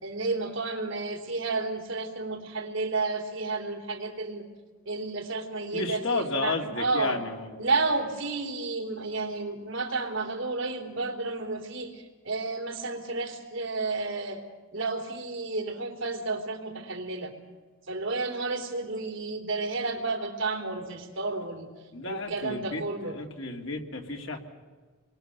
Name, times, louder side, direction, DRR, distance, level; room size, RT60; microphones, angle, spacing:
voice 1, 0.0-4.5 4.9-7.2 7.6-14.4 14.7-17.3 17.9-21.7 22.1-23.2, right 3 dB, 70° right, 3 dB, 3.5 m, -31 dB
voice 2, 5.7-7.5 21.9-24.4, left 3 dB, 65° left, 3 dB, 2.5 m, -32 dB
28.5 x 23.0 x 6.8 m, 1.4 s
head